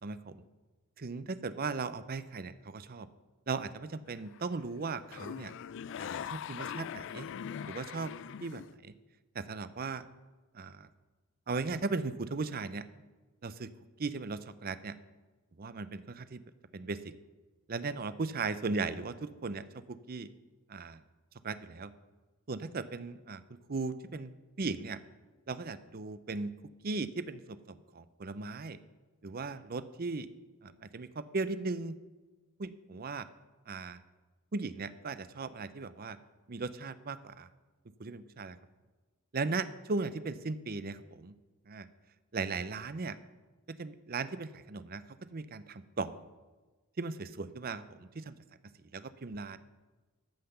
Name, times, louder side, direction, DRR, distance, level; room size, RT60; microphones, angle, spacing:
voice 1, 0.0-0.4 1.0-3.1 3.5-5.5 6.0-7.3 7.7-8.1 8.4-8.9 9.3-10.0 10.5-10.9 11.5-12.9 13.4-13.7 14.0-15.0 15.6-16.4 16.7-17.1 17.7-20.3 20.7-21.0 21.4-21.9 22.5-24.3 24.6-25.0 25.5-26.5 26.8-28.8 29.2-30.3 30.6-32.0 32.6-33.3 33.7-34.0 34.5-36.2 36.5-37.5 38.0-38.6 39.3-41.4 41.7-41.9 42.3-43.2 43.8-45.0 45.3-46.2 47.0-48.4 48.9-49.6, right 4 dB, 45° right, 14 dB, 0.6 m, -37 dB
sound 1, 4.1-4.6 4.8-8.8, left 8 dB, 60° left, 0.3 m, -41 dB
14.0 x 5.8 x 6.8 m, 1.2 s
head